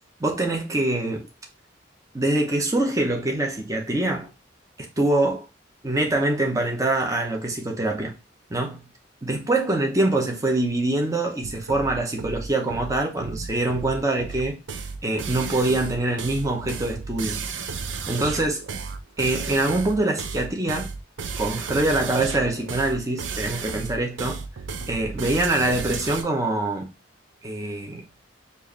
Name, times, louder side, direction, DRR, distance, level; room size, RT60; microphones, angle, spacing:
voice 1, 0.2-1.3 2.1-4.3 5.0-5.5 5.8-8.2 8.5-8.9 9.2-14.6 15.0-17.4 18.1-18.6 19.2-20.9 21.4-24.4 24.9-26.9 27.4-28.1, right 2 dB, 20° right, 0.8 m, -24 dB
sound 1, 11.4-26.2, right 5 dB, 75° right, 0.5 m, -33 dB
4.6 x 2.6 x 3.0 m
head